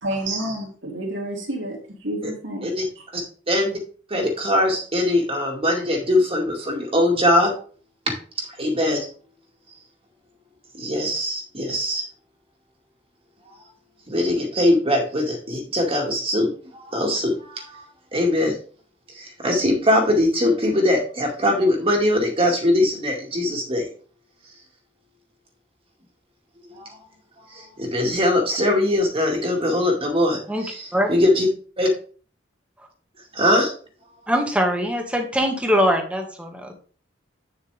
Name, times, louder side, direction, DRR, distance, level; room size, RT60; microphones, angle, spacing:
voice 1, 0.0-1.8 2.0-2.7, right 1 dB, 70° right, 3.0 m, -29 dB
voice 2, 3.1-3.8 4.1-7.5 8.4-9.1 10.7-12.0 14.1-17.9 18.1-18.6 19.1-23.9 26.6-27.0 27.4-31.5 31.8-31.9 33.3-33.7, left 1 dB, 30° right, 2.1 m, -21 dB
voice 3, 34.3-36.7, equal, 5° right, 1.6 m, -22 dB
9.0 x 7.0 x 3.4 m
head